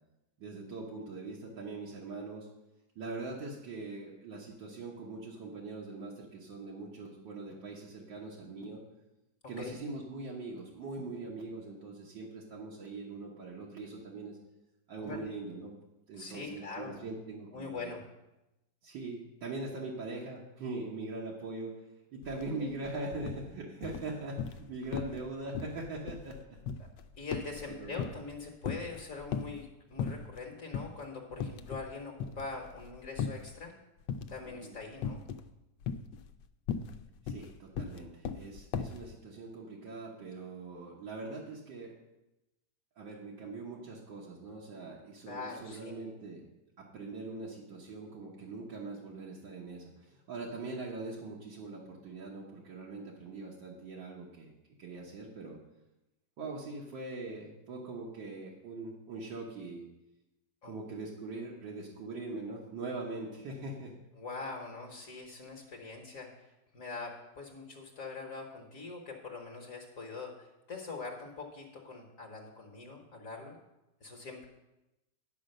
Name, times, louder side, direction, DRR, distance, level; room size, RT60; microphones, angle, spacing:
voice 1, 0.4-2.5 3.0-8.8 9.5-14.4 14.9-15.7 16.1-17.9 18.8-21.7 22.1-26.4 27.7-28.0 34.4-34.8 37.2-42.0 43.0-46.5 46.8-54.5 54.8-55.6 56.4-59.9 60.6-63.9, right 3 dB, 75° right, -4 dB, 1.9 m, -42 dB
voice 2, 16.2-17.0 17.5-18.0 22.3-22.7 27.2-33.7 34.3-35.3 45.2-46.1 60.6-60.7 64.2-66.5 66.7-73.6 74.0-74.5, left 4 dB, 50° left, 1 dB, 1.4 m, -43 dB
sound 1, 22.2-22.4 22.7-23.4 23.8-24.7 24.9-25.3 25.6-28.4 28.6-29.6 30.0-30.4 30.7-30.9 31.3-31.9 32.2-33.6 34.1-34.5 35.0-35.5 35.8-39.0, left 7 dB, 80° left, 1.2 m, -37 dB
10.5 x 5.2 x 6.5 m, 0.96 s
omnidirectional pair, 2.0 m